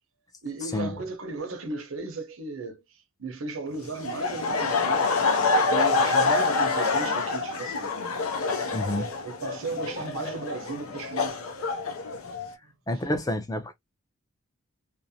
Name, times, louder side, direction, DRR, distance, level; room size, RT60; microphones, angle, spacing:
voice 1, 0.4-2.8 3.2-5.1 5.7-7.9 8.6-11.5, right 3 dB, 75° right, 0.8 m, -36 dB
Laughter, 4.0-12.5, left 3 dB, 80° left, 0.6 m, -26 dB
voice 2, 8.7-9.1 12.9-13.7, left 1 dB, 15° left, 0.4 m, -29 dB
2.5 x 2.1 x 2.7 m
head